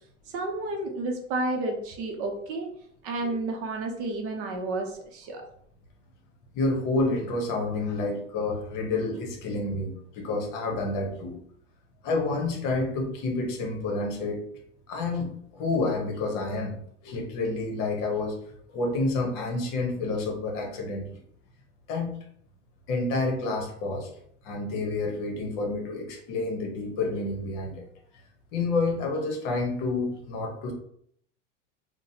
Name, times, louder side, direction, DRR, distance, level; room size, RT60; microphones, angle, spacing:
voice 1, 0.3-2.7 3.0-5.5, right 2 dB, 35° right, 3 dB, 0.7 m, -31 dB
voice 2, 6.5-11.4 12.0-14.4 14.9-16.8 17.0-18.4 18.7-21.2 21.9-22.1 22.9-24.1 24.4-27.9 28.5-30.7, left 3 dB, 45° left, 2 dB, 1.0 m, -29 dB
3.9 x 2.2 x 2.7 m, 0.66 s
hypercardioid pair, 110°, 38 cm